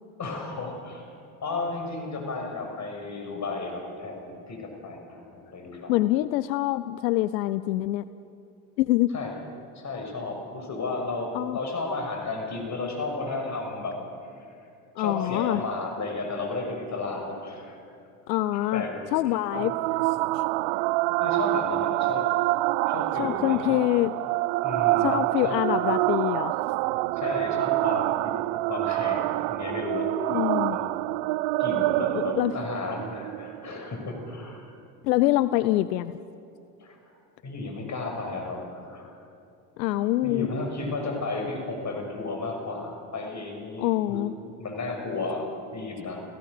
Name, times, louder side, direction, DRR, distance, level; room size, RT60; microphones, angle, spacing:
voice 1, 0.2-1.1 1.4-6.0 9.1-9.4 9.7-14.0 14.4-14.5 15.0-17.8 18.7-19.0 19.5-19.7 21.2-22.3 22.8-23.8 24.6-25.6 27.2-28.3 28.7-30.4 30.7-31.1 31.6-34.7 36.8-37.0 37.4-39.2 39.9-44.2 44.6-46.2, left 3 dB, 35° left, 3 dB, 6.4 m, -33 dB
voice 2, 5.9-8.0 8.8-9.2 11.3-11.6 15.0-15.6 18.3-18.8 19.1-19.7 20.3-20.4 23.2-24.1 25.0-26.6 30.3-30.8 32.1-32.5 35.0-36.2 39.8-40.5 43.8-44.3, left 16 dB, 80° left, 15 dB, 0.7 m, -25 dB
sound 1, 19.5-34.5, right 20 dB, 60° right, 0.6 m, -26 dB
30.0 x 16.0 x 6.7 m, 2.6 s
hypercardioid pair, 80°, 49 cm